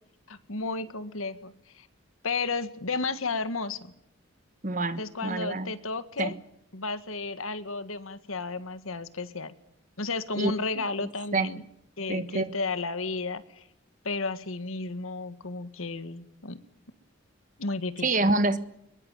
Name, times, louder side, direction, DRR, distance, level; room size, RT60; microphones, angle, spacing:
voice 1, 0.3-1.9 2.2-3.9 5.0-6.4 6.7-9.5 10.0-11.6 12.0-13.6 14.0-16.6 17.6-18.3, left 3 dB, 85° left, 12 dB, 1.8 m, -33 dB
voice 2, 4.6-5.7 6.2-6.3 10.4-11.5 12.1-12.5 18.0-18.6, right 2 dB, 40° right, 13 dB, 1.4 m, -27 dB
22.5 x 22.0 x 9.1 m, 0.76 s
head